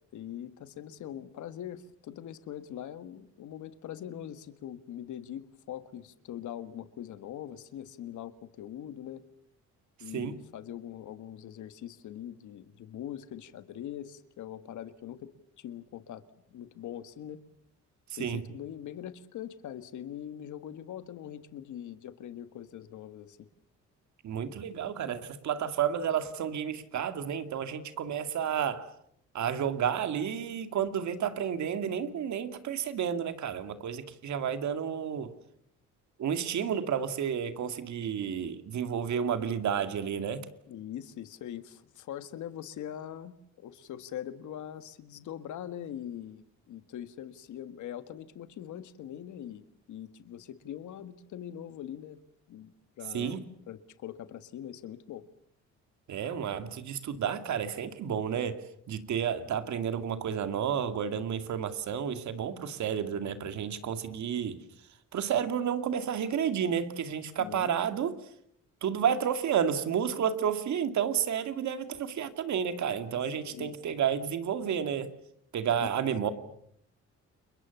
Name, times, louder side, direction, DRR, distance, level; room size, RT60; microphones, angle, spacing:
voice 1, 0.1-9.2 10.0-16.2 16.5-17.4 18.2-23.5 40.7-52.2 52.5-53.4 53.7-55.3 67.4-67.7 73.4-73.7 76.2-76.3, left 10 dB, 75° left, 1.7 m, -42 dB
voice 2, 18.1-18.4 24.2-28.9 29.3-35.3 36.2-40.5 53.1-53.4 56.1-64.6 65.1-68.1 68.8-75.1 75.5-76.3, right 8 dB, 70° right, 2.3 m, -31 dB
30.0 x 22.5 x 7.1 m
cardioid pair, 90°, 30 cm